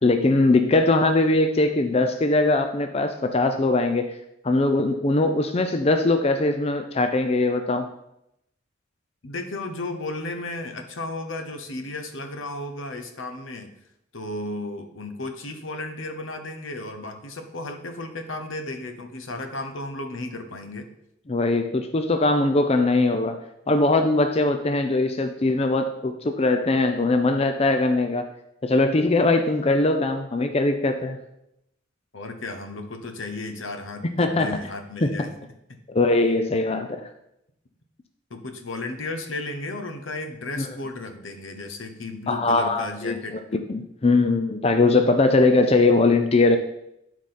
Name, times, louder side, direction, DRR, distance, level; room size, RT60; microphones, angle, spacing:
voice 1, 0.0-4.1 4.4-7.9 21.3-23.4 23.7-28.2 28.6-31.2 34.2-34.5 35.0-35.1 35.9-37.0 40.6-40.7 42.3-43.4 43.7-46.6, left 2 dB, 30° left, 7 dB, 0.5 m, -21 dB
voice 2, 9.2-13.7 14.1-20.9 32.1-35.3 38.3-43.4, left 2 dB, 75° left, 6 dB, 1.0 m, -34 dB
11.5 x 4.9 x 4.3 m, 0.82 s
head